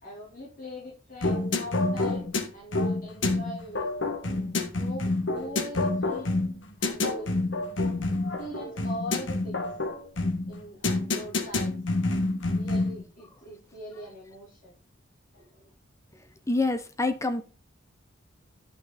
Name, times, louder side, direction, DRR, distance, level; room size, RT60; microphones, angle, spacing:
voice 1, 0.0-2.3 2.5-3.9 4.2-6.3 6.8-7.3 8.1-9.7 10.5-11.8 12.4-14.8 15.3-15.7, equal, 45° left, -5 dB, 4.0 m, -42 dB
sound 1, 1.2-13.0, left 2 dB, 75° left, 1.6 m, -28 dB
voice 2, 16.5-17.4, left 2 dB, 15° left, 10 dB, 0.8 m, -26 dB
11.0 x 6.0 x 4.1 m, 0.34 s
head